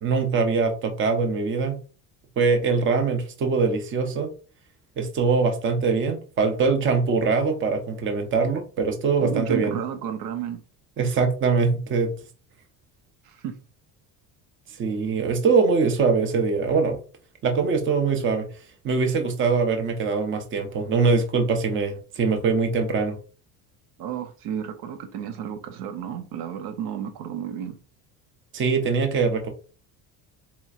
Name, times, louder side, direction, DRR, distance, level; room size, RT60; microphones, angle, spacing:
voice 1, 0.0-1.8 2.4-4.3 5.0-9.8 11.0-12.1 14.8-17.0 17.4-18.5 18.8-23.2 28.5-29.5, right 4 dB, 30° right, 0.7 m, -23 dB
voice 2, 9.2-10.6 13.2-13.5 24.0-27.8, right 9 dB, 75° right, 0.8 m, -32 dB
4.3 x 2.9 x 2.4 m
cardioid pair, 150°, 39 cm